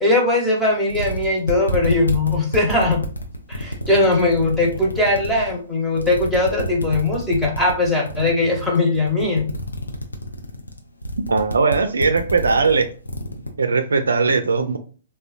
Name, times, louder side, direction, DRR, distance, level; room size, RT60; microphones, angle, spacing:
voice 1, 0.0-3.0 3.5-9.5, left 2 dB, 5° left, -2 dB, 1.0 m, -20 dB
sound 1, 0.6-0.7 0.9-5.5 5.9-13.5, equal, 90° left, 0.5 m, -28 dB
voice 2, 11.3-12.9 13.6-14.8, right 4 dB, 75° right, 7 dB, 0.4 m, -19 dB
3.7 x 2.2 x 2.5 m, 0.40 s
figure-of-eight pair, 125°, 0 cm